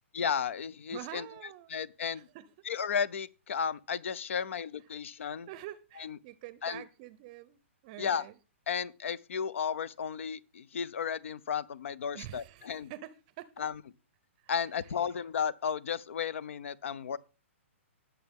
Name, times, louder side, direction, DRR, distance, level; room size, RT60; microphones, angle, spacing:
voice 1, 0.1-1.3 1.7-2.3 2.6-5.5 6.0-6.2 6.6-6.8 8.0-8.3 8.7-12.9 13.6-13.8 14.5-17.2, left 7 dB, 70° left, 0.8 m, -34 dB
voice 2, 0.9-1.7 2.1-2.5 5.2-8.3 12.1-13.5 14.4-14.5, right 14 dB, 35° right, 0.6 m, -46 dB
19.0 x 7.0 x 3.6 m
hypercardioid pair, 150°, 7 cm